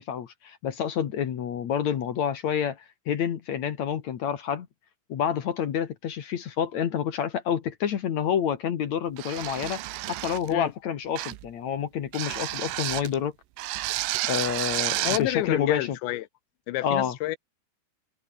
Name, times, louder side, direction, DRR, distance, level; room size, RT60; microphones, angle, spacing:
voice 1, 0.0-4.7 5.1-9.8 10.1-13.3 14.3-16.0 16.8-17.2, left 8 dB, 60° left, 1.9 m, -28 dB
sound 1, 9.2-10.5 11.2-11.5 12.1-13.1 13.6-15.3, right 16 dB, 90° right, 3.8 m, -31 dB
voice 2, 15.0-16.3 16.7-17.4, left 17 dB, 75° left, 3.0 m, -29 dB
omnidirectional pair, 5.6 m